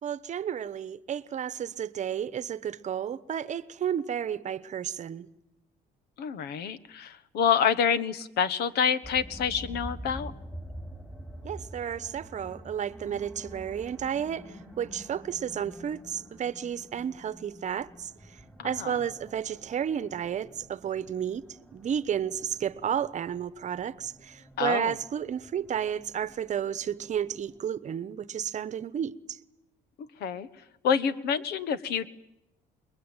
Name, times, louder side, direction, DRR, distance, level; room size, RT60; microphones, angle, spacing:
voice 1, 0.0-5.3 11.4-21.4 21.7-29.4, right 9 dB, 45° right, 1.0 m, -32 dB
voice 2, 6.2-10.3 18.6-18.9 24.6-24.9 30.2-30.5 30.8-32.1, left 7 dB, 75° left, 1.4 m, -27 dB
sound 1, 9.0-27.6, equal, 10° left, 4.9 m, -47 dB
28.0 x 21.5 x 9.0 m
cardioid pair, 110°, 17 cm